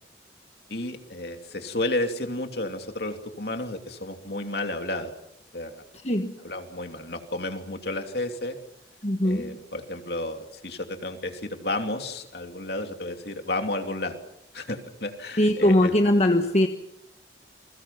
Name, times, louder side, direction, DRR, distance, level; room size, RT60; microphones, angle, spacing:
voice 1, 0.7-5.1 5.5-5.8 6.4-8.6 9.2-14.1 14.5-15.9, left 2 dB, 60° left, 5 dB, 3.0 m, -32 dB
voice 2, 6.0-6.4 9.0-9.6 15.4-16.7, left 1 dB, 35° left, 4 dB, 1.5 m, -21 dB
29.5 x 22.5 x 5.9 m, 0.77 s
head